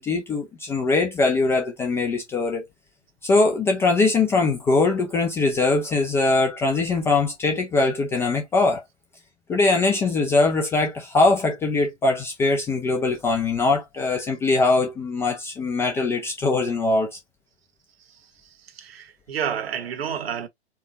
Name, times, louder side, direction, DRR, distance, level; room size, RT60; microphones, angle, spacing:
voice 1, 0.0-2.7 3.2-8.8 9.5-17.2, left 3 dB, 5° left, 0.4 m, -22 dB
voice 2, 18.1-20.5, right 8 dB, 60° right, 1.1 m, -31 dB
4.6 x 2.3 x 4.1 m
figure-of-eight pair, 105°, 35 cm